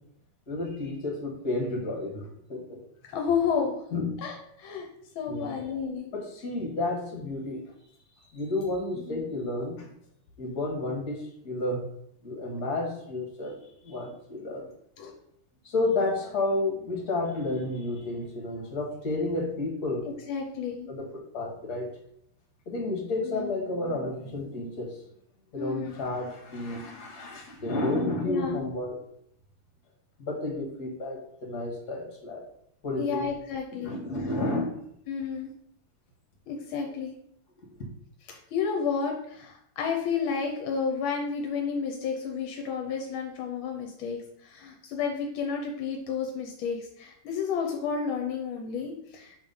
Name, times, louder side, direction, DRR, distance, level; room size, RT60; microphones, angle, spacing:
voice 1, 0.5-2.8 3.9-4.1 5.3-5.6 6.1-7.6 8.3-9.9 10.4-11.9 12.2-13.5 13.8-14.7 15.6-20.0 20.9-21.1 21.3-21.9 22.7-25.0 25.5-29.0 30.2-32.4 32.8-33.3 33.8-34.8 37.7-37.9, left 2 dB, 50° left, 0 dB, 2.1 m, -31 dB
voice 2, 3.0-3.8 4.2-4.9 5.1-6.1 15.0-15.1 20.0-20.9 23.2-23.5 25.6-26.0 28.2-28.7 33.0-34.0 35.1-35.5 36.5-37.1 38.2-49.4, left 6 dB, 85° left, 2 dB, 1.6 m, -31 dB
5.5 x 3.6 x 5.4 m, 0.71 s
omnidirectional pair, 2.2 m